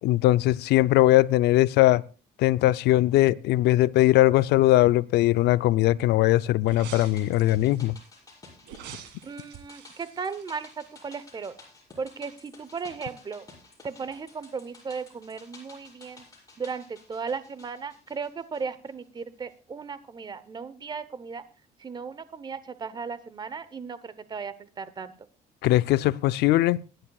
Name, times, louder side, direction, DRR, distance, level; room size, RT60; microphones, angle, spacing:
voice 1, 0.0-2.0 2.4-7.9 25.6-26.8, left 16 dB, 80° left, 0.5 m, -20 dB
sound 1, 6.6-7.8 8.6-11.1 11.4-11.5, right 9 dB, 90° right, 1.9 m, -45 dB
sound 2, 6.8-19.2 19.5-19.6, left 3 dB, 20° left, 6.5 m, -52 dB
voice 2, 9.2-11.5 12.0-13.4 13.8-16.2 16.6-21.4 21.8-25.1, right 5 dB, 25° right, 0.9 m, -36 dB
24.0 x 11.0 x 2.4 m
cardioid pair, 110°, 17 cm